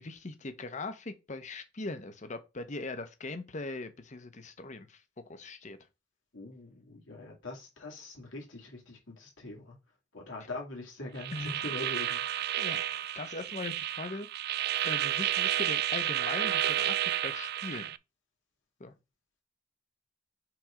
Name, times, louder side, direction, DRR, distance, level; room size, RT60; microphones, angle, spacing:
voice 1, 0.0-5.8 11.3-11.6 12.6-14.3 14.8-17.9 18.8-18.9, left 3 dB, 40° left, 0.9 m, -40 dB
voice 2, 6.3-9.8 10.1-12.5, left 2 dB, 85° left, 2.2 m, -43 dB
sound 1, 11.2-18.0, right 12 dB, 55° right, 0.3 m, -31 dB
6.1 x 3.4 x 4.9 m
head